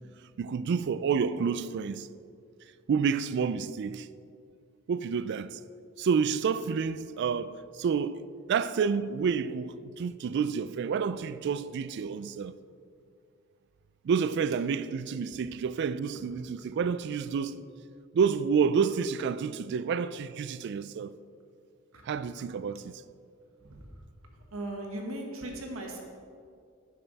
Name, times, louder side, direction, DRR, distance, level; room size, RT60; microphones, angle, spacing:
voice 1, 0.4-2.1 2.9-4.1 4.9-5.6 6.0-8.2 8.5-12.5 14.0-17.6 18.1-21.1 22.1-23.0, right 6 dB, 55° right, 0.3 m, -29 dB
voice 2, 23.6-24.0 24.5-26.0, right 1 dB, 85° right, 1.4 m, -38 dB
10.0 x 6.6 x 4.0 m
head